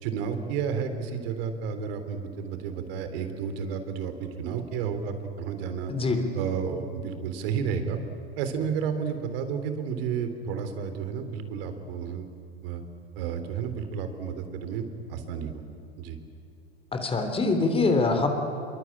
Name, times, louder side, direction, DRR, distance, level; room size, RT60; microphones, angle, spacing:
voice 1, 0.0-5.9 6.3-8.0 8.4-12.3 12.6-12.8 13.2-15.6 16.0-16.2, right 7 dB, 60° right, 8 dB, 3.7 m, -31 dB
voice 2, 5.9-6.2 16.9-18.3, left 3 dB, 15° left, 6 dB, 3.5 m, -24 dB
26.5 x 23.0 x 8.8 m, 2.8 s
hypercardioid pair, 115°, 32 cm